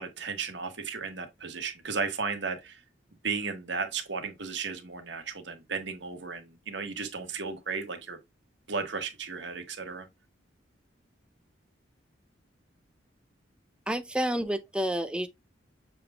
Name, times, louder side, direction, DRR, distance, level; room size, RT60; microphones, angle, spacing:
voice 1, 0.0-2.8 3.2-8.2 8.7-10.1, right 5 dB, 65° right, 1.3 m, -34 dB
voice 2, 13.9-15.3, equal, 5° right, 0.5 m, -29 dB
6.8 x 3.4 x 2.2 m
head